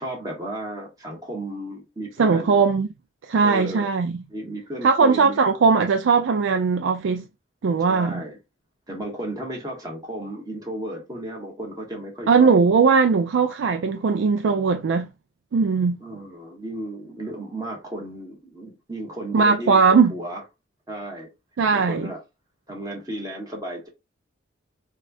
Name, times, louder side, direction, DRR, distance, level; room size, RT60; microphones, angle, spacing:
voice 1, 0.0-2.6 3.4-3.8 4.3-5.6 7.9-8.4 8.9-12.6 16.0-20.4 20.9-21.3 21.7-22.2 22.7-23.9, right 1 dB, 20° right, 1.2 m, -34 dB
voice 2, 2.2-2.9 3.3-4.2 4.8-7.3 7.6-8.2 12.3-15.1 15.5-16.0 19.3-20.1 21.6-22.1, right 5 dB, 70° right, 0.4 m, -19 dB
4.1 x 2.3 x 2.5 m
head